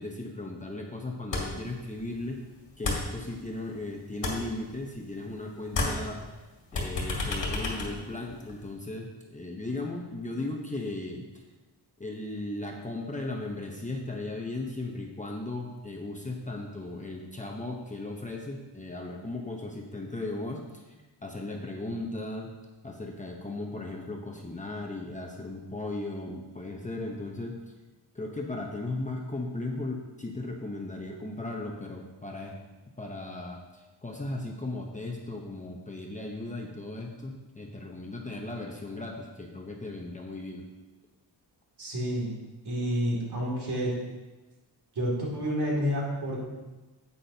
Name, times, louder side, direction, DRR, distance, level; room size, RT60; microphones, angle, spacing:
voice 1, 0.0-2.4 2.8-6.2 6.7-11.3 12.0-20.9 21.2-22.5 22.8-27.6 28.1-32.6 33.0-40.7, left 2 dB, 15° left, 0 dB, 0.8 m, -36 dB
sound 1, 1.3-1.7 2.0-3.8 4.1-5.4 5.6-8.7, left 2 dB, 90° left, 2.1 m, -32 dB
voice 2, 41.8-42.3 42.6-43.9 45.0-46.5, equal, 65° right, -3 dB, 2.5 m, -29 dB
9.8 x 8.5 x 2.8 m, 1.2 s
wide cardioid pair, 165°, 43 cm